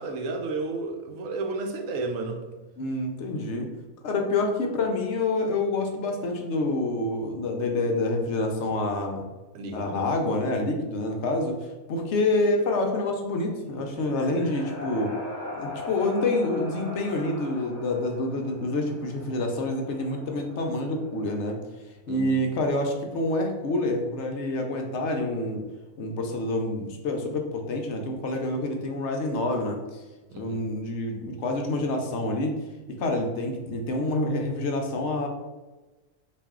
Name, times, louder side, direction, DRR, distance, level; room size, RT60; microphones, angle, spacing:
voice 1, 0.0-2.4 9.5-10.1 22.1-22.5 30.3-30.6, right 3 dB, 80° right, 4 dB, 1.0 m, -32 dB
voice 2, 2.8-3.7 4.0-9.3 9.7-15.2 15.5-21.6 22.1-25.6 26.0-30.0 30.4-32.6 33.0-35.3, left 2 dB, 65° left, 2 dB, 0.8 m, -27 dB
sound 1, 13.6-21.4, left 2 dB, 45° left, 1.1 m, -40 dB
4.1 x 2.6 x 3.5 m, 1.2 s
omnidirectional pair, 1.4 m